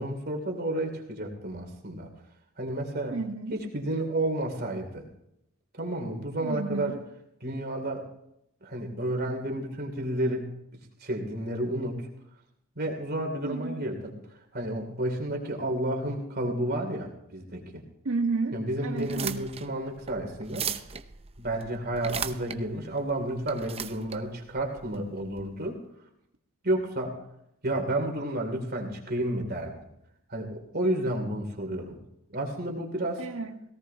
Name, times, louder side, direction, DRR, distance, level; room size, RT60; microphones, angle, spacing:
voice 1, 0.0-2.1 2.6-3.2 3.5-5.0 5.8-6.9 7.4-8.0 8.6-10.5 11.0-12.0 12.7-14.1 14.5-17.8 18.5-20.7 21.4-25.8 26.6-27.1 27.6-29.7 30.3-32.0 32.3-33.2, right 1 dB, 45° right, 2 dB, 3.0 m, -31 dB
voice 2, 3.1-3.6 6.4-7.0 13.4-13.9 18.0-19.4 33.2-33.6, right 3 dB, 65° right, 4 dB, 1.7 m, -32 dB
sound 1, 18.9-25.4, right 7 dB, 30° right, 0.7 m, -38 dB
18.5 x 17.5 x 2.9 m, 0.79 s
head